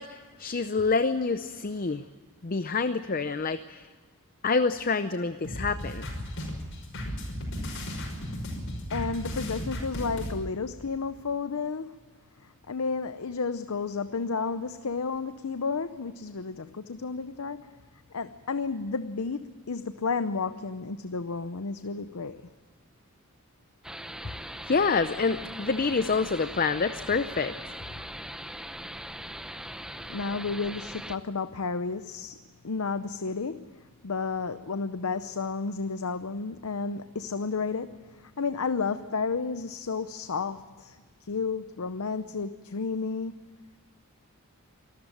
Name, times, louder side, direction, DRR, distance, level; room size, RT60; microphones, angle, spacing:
voice 1, 0.0-2.0 2.4-3.9 4.4-6.1 24.7-27.7, left 4 dB, 40° left, 11 dB, 0.6 m, -27 dB
sound 1, 5.4-10.3, equal, 55° left, 5.8 m, -35 dB
voice 2, 8.9-12.0 12.7-17.7 18.1-22.4 30.1-32.4 32.6-43.4, left 4 dB, 75° left, 11 dB, 0.7 m, -32 dB
sound 2, 23.8-31.2, right 1 dB, 5° right, 0.7 m, -40 dB
26.0 x 13.5 x 9.0 m, 1.5 s
head